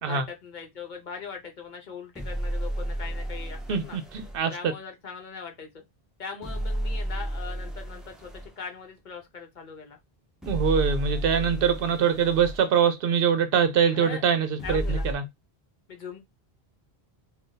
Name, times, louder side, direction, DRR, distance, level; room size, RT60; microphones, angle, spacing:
voice 1, 0.0-4.0 4.5-5.7 6.2-10.0 13.9-14.2 14.6-15.1 15.9-16.2, left 5 dB, 55° left, 0.8 m, -40 dB
sound 1, 2.2-4.4 6.4-8.5 10.4-12.6 14.6-15.1, right 1 dB, ahead, 0.4 m, -32 dB
voice 2, 3.7-4.5 10.5-15.2, right 7 dB, 65° right, 0.7 m, -23 dB
2.5 x 2.3 x 3.7 m
omnidirectional pair, 1.1 m